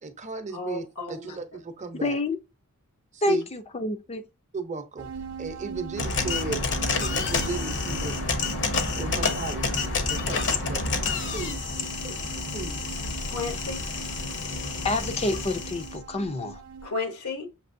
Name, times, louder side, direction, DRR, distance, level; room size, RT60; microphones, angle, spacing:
voice 1, 0.0-2.2 3.1-3.5 4.5-5.1 5.4-8.2 9.0-9.7 10.1-10.9 11.3-11.6 12.0-12.2 12.5-12.9, right 4 dB, 30° right, 0.7 m, -35 dB
voice 2, 0.5-1.4 13.3-13.8 16.8-17.5, left 3 dB, 80° left, 1.1 m, -33 dB
voice 3, 2.0-2.4 3.2-4.2 8.7-8.8 14.8-16.6, left 2 dB, 30° left, 0.5 m, -28 dB
sound 1, 5.0-16.9, right 5 dB, 70° right, 0.6 m, -40 dB
sound 2, 6.0-15.9, left 4 dB, 55° left, 0.8 m, -29 dB
6.6 x 2.9 x 2.6 m
head